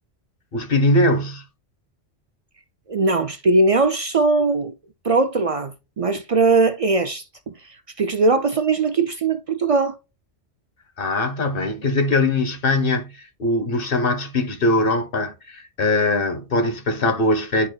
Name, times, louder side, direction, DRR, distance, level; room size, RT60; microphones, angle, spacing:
voice 1, 0.5-1.4 11.0-17.7, left 2 dB, 50° left, 1.1 m, -21 dB
voice 2, 2.9-4.7 5.0-10.0, right 3 dB, 65° right, 0.3 m, -20 dB
10.5 x 4.2 x 2.3 m
omnidirectional pair, 1.2 m